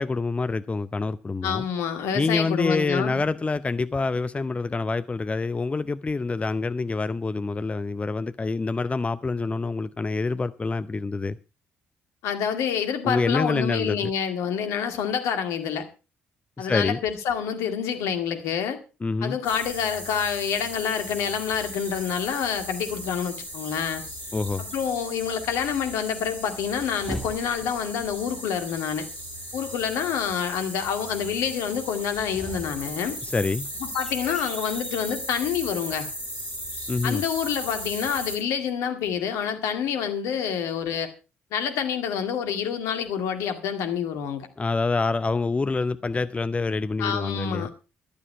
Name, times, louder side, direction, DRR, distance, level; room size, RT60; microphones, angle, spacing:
voice 1, 0.0-1.6 2.1-11.4 13.0-14.1 16.6-17.0 19.0-19.4 24.3-24.6 33.2-33.7 36.9-37.2 44.6-47.7, left 3 dB, 25° left, 0.6 m, -26 dB
voice 2, 1.4-3.2 12.2-15.9 16.6-18.8 19.2-24.0 24.6-29.1 29.5-33.2 33.8-36.1 37.0-41.1 41.5-44.5 47.0-47.9, left 7 dB, 65° left, 2.0 m, -27 dB
sound 1, 19.4-38.4, equal, 85° left, 3.2 m, -37 dB
sound 2, 26.6-27.9 32.0-35.3, equal, 5° left, 2.7 m, -40 dB
14.0 x 12.5 x 4.5 m
figure-of-eight pair, 45°, 5 cm